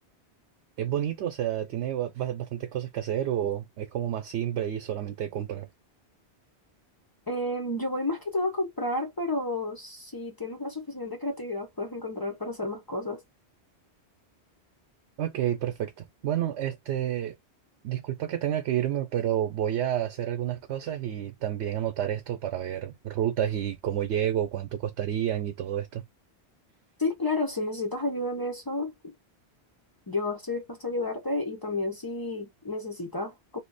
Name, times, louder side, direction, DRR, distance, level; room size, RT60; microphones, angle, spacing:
voice 1, 0.8-5.7 15.2-17.3 17.8-26.0, right 11 dB, 85° right, 0.9 m, -30 dB
voice 2, 7.3-13.2 27.0-29.1 30.1-33.6, left 2 dB, 35° left, 0.3 m, -31 dB
2.7 x 2.1 x 3.8 m
omnidirectional pair, 1.1 m